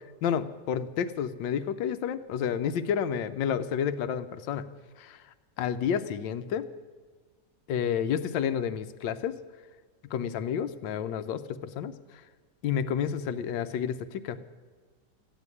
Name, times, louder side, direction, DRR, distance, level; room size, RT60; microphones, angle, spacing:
voice 1, 0.2-4.7 5.0-5.2 5.6-6.7 7.7-9.4 10.1-11.9 12.6-14.4, left 8 dB, 85° left, 12 dB, 1.4 m, -30 dB
14.0 x 9.2 x 9.6 m, 1.5 s
omnidirectional pair, 2.0 m